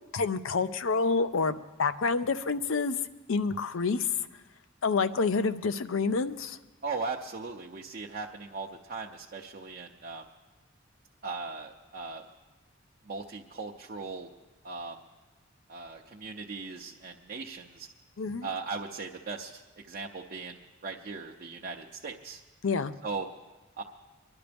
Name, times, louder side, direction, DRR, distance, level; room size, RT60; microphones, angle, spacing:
voice 1, 0.1-3.0 3.3-4.1 4.8-6.6 18.2-18.5 22.6-22.9, left 4 dB, 70° left, 12 dB, 0.6 m, -28 dB
voice 2, 6.8-10.2 11.2-12.3 13.1-14.3 14.6-15.0 15.7-17.9 18.4-19.6 19.9-22.4 23.0-23.3 23.8-23.9, right 4 dB, 45° right, 0 dB, 0.7 m, -38 dB
24.0 x 11.5 x 3.5 m, 1.2 s
head